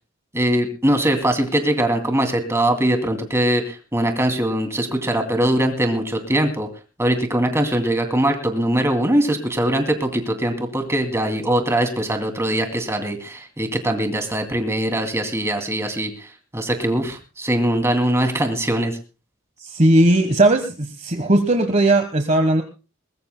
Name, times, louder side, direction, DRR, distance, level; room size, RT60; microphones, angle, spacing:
voice 1, 0.3-6.7 7.0-16.3 16.5-19.0, right 1 dB, 15° right, 5 dB, 2.6 m, -21 dB
voice 2, 19.6-22.6, right 1 dB, 35° right, 7 dB, 1.2 m, -17 dB
21.5 x 21.0 x 2.2 m, 0.33 s
head